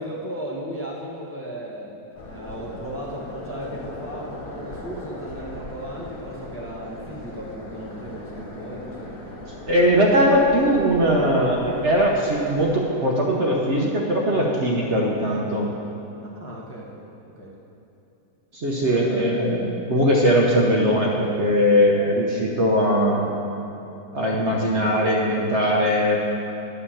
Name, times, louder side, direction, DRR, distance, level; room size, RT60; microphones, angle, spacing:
voice 1, 0.0-2.0 2.2-9.1 16.2-17.0 17.4-17.5 18.8-19.4, equal, 10° left, -5 dB, 1.2 m, -36 dB
sound 1, 2.1-12.8, left 1 dB, 65° left, 1.9 m, -38 dB
voice 2, 9.7-15.7 18.5-23.3 24.1-26.2, equal, 50° right, -2 dB, 1.2 m, -20 dB
11.0 x 5.5 x 7.2 m, 2.9 s
omnidirectional pair, 1.7 m